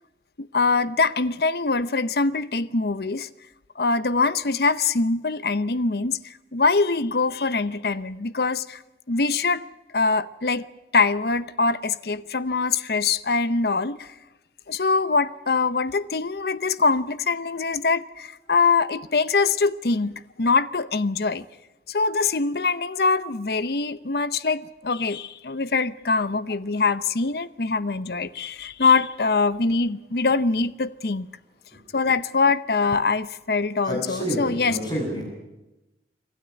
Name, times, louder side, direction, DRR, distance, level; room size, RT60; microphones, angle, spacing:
voice 1, 0.4-3.3 3.8-8.8 9.1-9.6 9.9-10.7 10.9-14.1 14.7-21.4 21.9-31.3 31.9-34.8, left 4 dB, 60° left, 0.7 m, -23 dB
voice 2, 33.8-35.3, right 1 dB, 25° left, 7.8 m, -29 dB
26.5 x 13.0 x 9.8 m
head